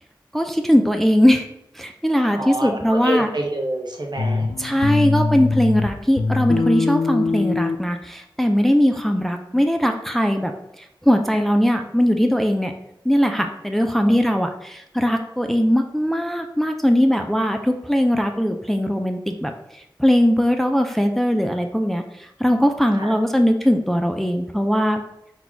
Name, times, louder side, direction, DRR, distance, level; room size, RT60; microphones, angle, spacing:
voice 1, 0.3-1.5 1.7-3.3 4.6-10.5 10.8-12.7 13.0-25.0, equal, 5° left, 5 dB, 0.4 m, -20 dB
voice 2, 2.4-4.4 23.0-23.1, right 1 dB, 60° right, 2 dB, 0.8 m, -26 dB
sound 1, 4.2-5.9 6.2-7.8, left 4 dB, 85° left, 0.4 m, -22 dB
4.1 x 2.3 x 4.4 m, 0.83 s
wide cardioid pair, 50°, 9 cm